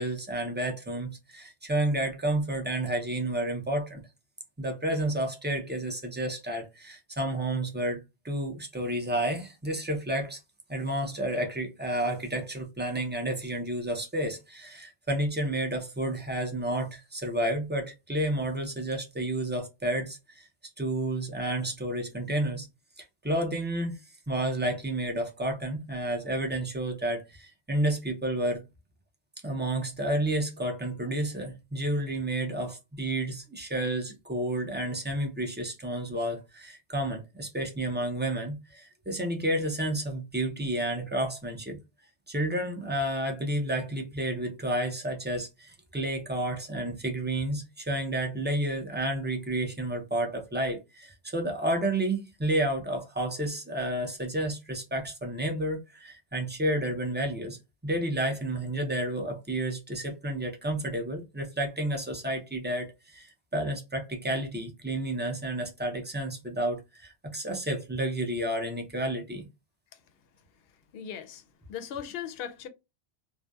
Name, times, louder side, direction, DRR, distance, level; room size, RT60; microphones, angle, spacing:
voice 1, 0.0-4.0 4.6-10.4 10.7-20.5 20.8-22.7 23.0-24.0 24.3-28.6 29.4-41.8 42.3-57.6 57.8-69.5, right 1 dB, 20° right, 0.3 m, -31 dB
voice 2, 70.9-71.4 71.7-72.7, left 9 dB, 65° left, 0.7 m, -38 dB
2.6 x 2.1 x 2.2 m
omnidirectional pair, 1.1 m